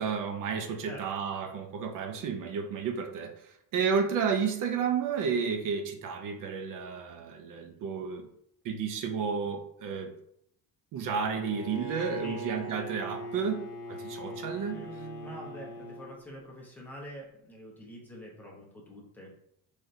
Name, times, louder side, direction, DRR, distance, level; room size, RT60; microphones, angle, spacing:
voice 1, 0.0-8.3 8.6-10.1 10.9-13.6 13.9-14.8, right 6 dB, 55° right, 5 dB, 0.6 m, -32 dB
Bowed string instrument, 11.3-16.1, right 1 dB, 60° left, 0.8 m, -40 dB
voice 2, 14.7-19.3, right 1 dB, 5° left, -2 dB, 0.8 m, -45 dB
4.0 x 3.2 x 2.6 m, 0.73 s
cardioid pair, 155°, 39 cm